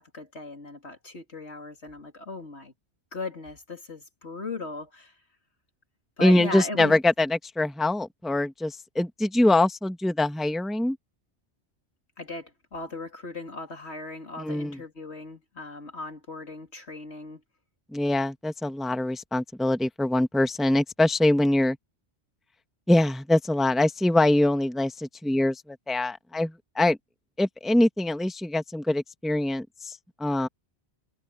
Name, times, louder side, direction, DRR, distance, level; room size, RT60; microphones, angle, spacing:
voice 1, 0.0-2.7 3.1-5.1 6.2-7.0 12.2-17.4, left 2 dB, 75° left, 3.4 m, -37 dB
voice 2, 6.2-11.0 14.4-14.8 17.9-21.8 22.9-27.0 27.4-30.5, left 1 dB, ahead, 1.0 m, -24 dB
omnidirectional pair, 1.1 m